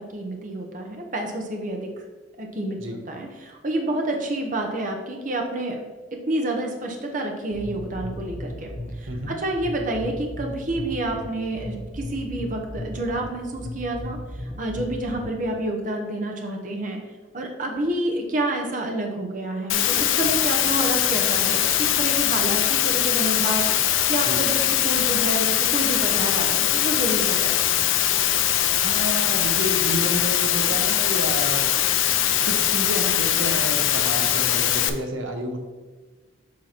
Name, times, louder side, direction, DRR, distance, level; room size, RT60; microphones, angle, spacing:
voice 1, 0.0-1.9 2.4-5.8 6.1-8.7 9.0-17.0 17.3-27.6, right 1 dB, 40° right, 2 dB, 0.9 m, -29 dB
sound 1, 7.5-15.5, left 1 dB, 40° left, 0.9 m, -36 dB
Water, 19.7-34.9, left 11 dB, 90° left, 0.5 m, -22 dB
voice 2, 28.8-31.7 32.3-35.6, right 1 dB, 90° right, 4 dB, 0.9 m, -30 dB
7.6 x 2.9 x 5.8 m, 1.3 s
head